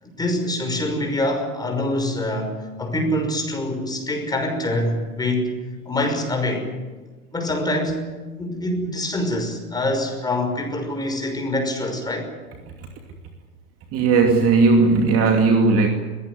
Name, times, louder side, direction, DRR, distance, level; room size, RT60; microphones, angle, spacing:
voice 1, 0.0-5.5 5.9-6.7 7.3-8.1 8.4-12.3, left 1 dB, 10° left, 4 dB, 5.9 m, -25 dB
voice 2, 13.9-15.9, right 4 dB, 30° right, 3 dB, 2.6 m, -16 dB
22.5 x 18.5 x 9.7 m, 1.3 s
figure-of-eight pair, 100°, 44 cm